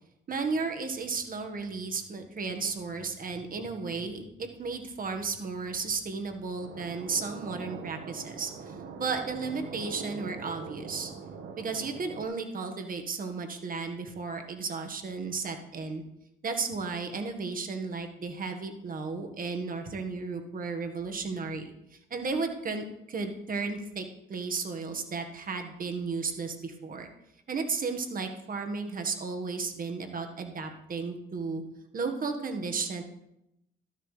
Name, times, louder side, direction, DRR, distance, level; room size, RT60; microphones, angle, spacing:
voice 1, 0.3-11.1 11.6-16.0 16.4-27.1 27.5-31.6 31.9-33.0, right 4 dB, 45° right, 5 dB, 1.6 m, -34 dB
sound 1, 6.6-12.2, right 5 dB, 65° right, 1.4 m, -42 dB
12.5 x 11.0 x 3.4 m, 0.85 s
cardioid pair, 90°, 20 cm